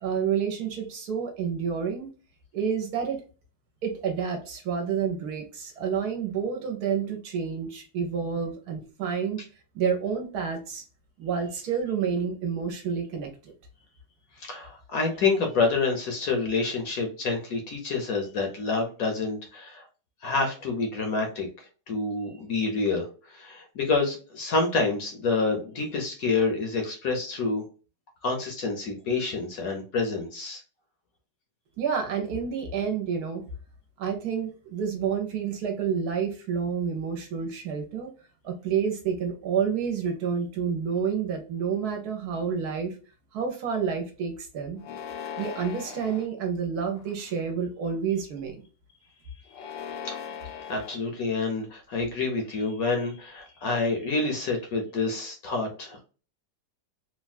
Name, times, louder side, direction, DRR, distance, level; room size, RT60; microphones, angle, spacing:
voice 1, 0.0-2.1 2.5-3.2 3.8-9.4 9.7-10.8 11.2-13.5 31.8-33.4 34.0-38.1 38.4-42.9 43.3-44.8 45.4-48.6, right 7 dB, 70° right, 3 dB, 1.1 m, -29 dB
voice 2, 14.4-19.8 20.2-27.6 28.2-30.6 50.0-50.2 50.6-56.0, left 3 dB, 60° left, 3 dB, 1.0 m, -28 dB
sound 1, 44.8-46.3 47.0-47.5 49.5-51.0, left 7 dB, 80° left, 1.2 m, -39 dB
3.3 x 2.2 x 2.4 m, 0.35 s
omnidirectional pair, 1.9 m